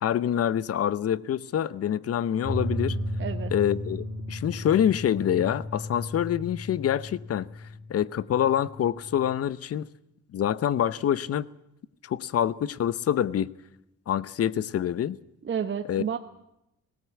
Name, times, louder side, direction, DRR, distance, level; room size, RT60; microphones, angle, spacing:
voice 1, 0.0-3.0 3.5-7.5 7.9-9.9 10.3-11.5 12.0-13.5 14.1-15.2 15.9-16.0, left 10 dB, 50° left, 0.7 m, -26 dB
sound 1, 2.4-9.3, equal, 10° left, 4.8 m, -35 dB
voice 2, 3.2-3.5 15.4-16.2, right 7 dB, 40° right, 1.0 m, -30 dB
18.5 x 17.0 x 8.3 m
cardioid pair, 90°, 30 cm